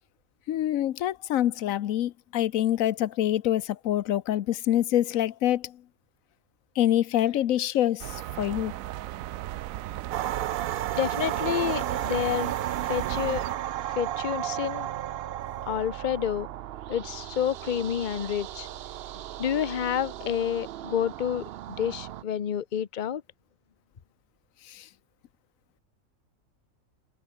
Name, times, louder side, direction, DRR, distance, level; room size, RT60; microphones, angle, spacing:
voice 1, 0.5-5.8 6.8-8.7 24.7-24.9, left 12 dB, 75° left, 1.1 m, -26 dB
sound 1, 8.0-13.5, right 14 dB, 80° right, 1.0 m, -36 dB
sound 2, 10.1-22.2, right 12 dB, 60° right, 0.6 m, -34 dB
voice 2, 11.0-12.5 12.9-13.4 14.0-14.9 15.7-16.5 16.9-18.7 19.4-21.4 21.8-23.2, left 9 dB, 40° left, 0.8 m, -29 dB
omnidirectional pair, 1.4 m